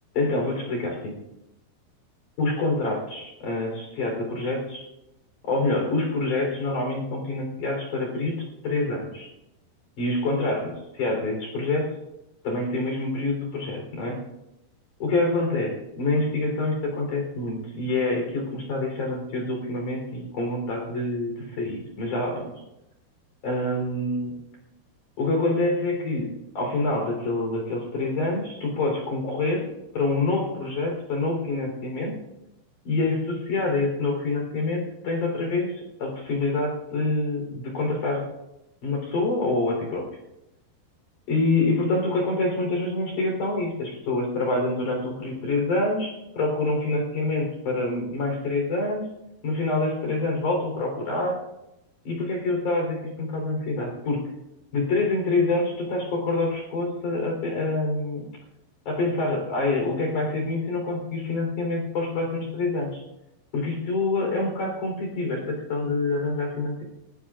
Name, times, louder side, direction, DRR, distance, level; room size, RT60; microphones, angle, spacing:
voice 1, 0.1-1.2 2.4-4.8 5.4-9.3 10.0-11.9 12.4-14.2 15.0-22.5 23.4-24.4 25.2-26.3 26.5-29.7 29.9-32.2 32.8-38.3 38.8-40.1 41.3-49.1 49.4-51.4 52.0-54.2 54.7-58.2 58.9-63.0 63.5-66.8, left 2 dB, 45° left, 1 dB, 5.0 m, -26 dB
26.5 x 20.0 x 2.5 m, 0.91 s
omnidirectional pair, 5.1 m